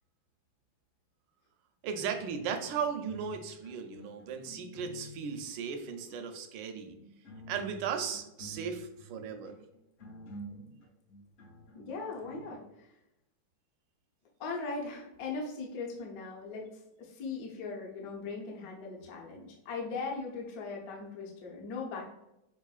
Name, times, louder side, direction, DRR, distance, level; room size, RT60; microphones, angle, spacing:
sound 1, 1.8-3.4 3.6-5.4 6.0-6.4 7.0-12.5, right 1 dB, 80° left, 1.9 m, -50 dB
voice 1, 1.8-6.9 7.5-9.5, right 6 dB, 75° right, 6 dB, 1.1 m, -36 dB
voice 2, 11.7-12.9 14.4-22.1, left 4 dB, 60° left, -1 dB, 1.0 m, -39 dB
5.5 x 2.5 x 2.3 m, 0.87 s
omnidirectional pair, 2.3 m